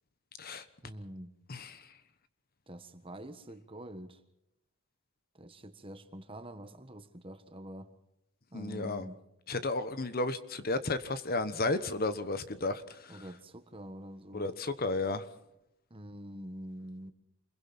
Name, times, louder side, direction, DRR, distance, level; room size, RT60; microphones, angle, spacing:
voice 1, 0.8-1.3 2.7-4.2 5.3-7.9 8.5-9.2 13.1-14.5 15.9-17.1, right 1 dB, 25° right, 1.4 m, -46 dB
voice 2, 1.5-1.9 8.5-9.0 9.5-13.2 14.3-15.3, left 2 dB, 40° left, 1.2 m, -33 dB
28.5 x 22.0 x 4.3 m
head